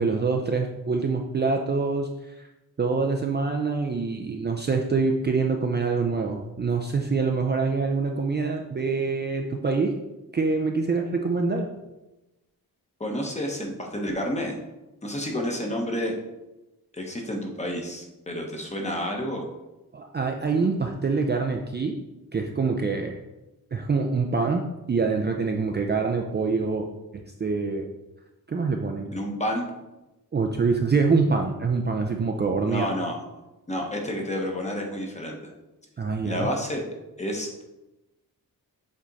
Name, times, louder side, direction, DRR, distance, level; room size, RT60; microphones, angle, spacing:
voice 1, 0.0-2.1 2.4-2.5 2.8-9.9 10.3-11.7 19.9-22.0 22.3-23.1 23.7-26.9 27.1-27.9 28.5-29.1 30.3-32.9 36.0-36.5, right 4 dB, 30° right, 2 dB, 0.5 m, -25 dB
voice 2, 13.0-14.6 15.0-16.1 16.9-19.4 29.1-29.7 32.7-33.2 33.7-35.5 36.2-36.8 37.2-37.6, equal, 20° left, 1 dB, 1.0 m, -30 dB
7.4 x 3.6 x 4.0 m, 1.0 s
wide cardioid pair, 140°, 36 cm